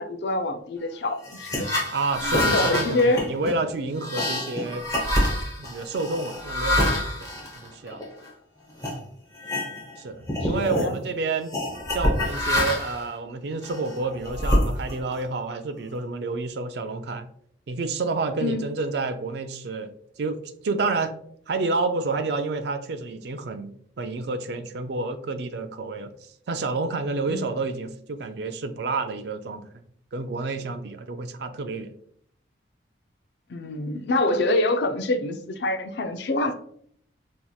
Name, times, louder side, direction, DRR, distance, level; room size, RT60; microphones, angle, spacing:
voice 1, 0.0-1.7 2.2-3.2 10.4-11.0 18.4-18.7 27.3-27.5 33.5-36.5, left 2 dB, 60° left, 7 dB, 0.4 m, -26 dB
sound 1, 1.2-8.3 8.8-9.0 9.4-10.0 10.2-10.9 11.5-13.0 13.6-15.2, left 1 dB, 20° left, 0.9 m, -26 dB
voice 2, 1.9-5.0 5.6-6.9 7.2-7.3 7.6-8.0 10.0-11.5 11.9-17.3 17.7-19.9 20.2-20.4 20.6-21.1 21.5-23.7 24.0-26.1 26.5-29.6 30.1-31.9, right 3 dB, 60° right, 9 dB, 0.4 m, -29 dB
4.4 x 2.8 x 2.3 m, 0.64 s
head